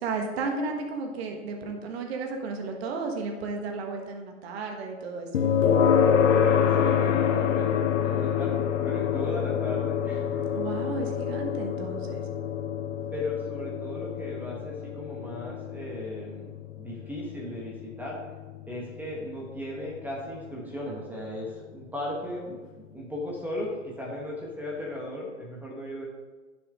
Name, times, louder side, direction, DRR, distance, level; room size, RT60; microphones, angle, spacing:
voice 1, 0.0-5.4 10.5-12.2, right 4 dB, 50° right, 2 dB, 1.7 m, -33 dB
sound 1, 5.3-20.3, left 8 dB, 70° left, 1.0 m, -27 dB
voice 2, 6.3-10.9 13.1-16.5 16.8-18.3 18.7-22.6 22.9-26.0, left 1 dB, 5° right, -3 dB, 1.5 m, -36 dB
11.0 x 6.9 x 3.8 m, 1.3 s
hypercardioid pair, 135°, 39 cm